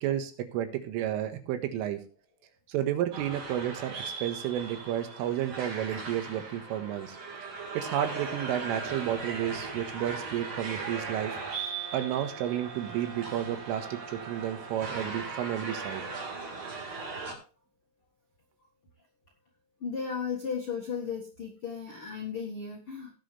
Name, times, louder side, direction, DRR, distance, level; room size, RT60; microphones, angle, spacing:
voice 1, 0.0-2.0 2.7-7.2 7.8-11.4 11.9-16.0, right 11 dB, 90° right, 8 dB, 4.1 m, -31 dB
sound 1, 3.1-17.3, right 4 dB, 45° right, 4.8 m, -39 dB
Brass instrument, 10.9-14.9, right 4 dB, 70° right, 4.5 m, -46 dB
voice 2, 19.8-23.1, left 6 dB, 85° left, 1 dB, 1.2 m, -35 dB
18.5 x 7.6 x 3.3 m, 0.35 s
omnidirectional pair, 5.6 m